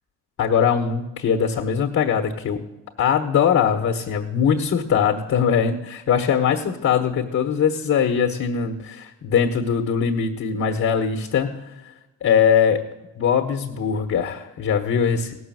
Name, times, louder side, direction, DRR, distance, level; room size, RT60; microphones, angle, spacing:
voice 1, 0.4-2.6 3.0-11.6 12.2-12.8 13.1-15.4, left 7 dB, 55° left, 3 dB, 1.3 m, -21 dB
16.5 x 6.4 x 7.7 m, 1.0 s
cardioid pair, 90°, 30 cm